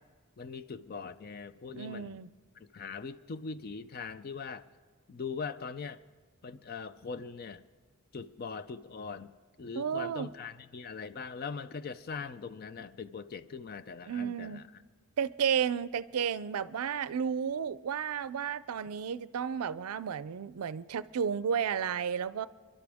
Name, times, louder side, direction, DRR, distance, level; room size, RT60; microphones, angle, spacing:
voice 1, 0.4-2.2 2.6-4.7 5.1-6.0 6.4-7.6 8.1-9.3 9.6-14.7, left 5 dB, 45° left, 0.4 m, -41 dB
voice 2, 1.7-2.3 9.8-10.3 14.1-14.7 15.2-22.5, right 7 dB, 85° right, 0.4 m, -32 dB
27.5 x 12.0 x 3.5 m
head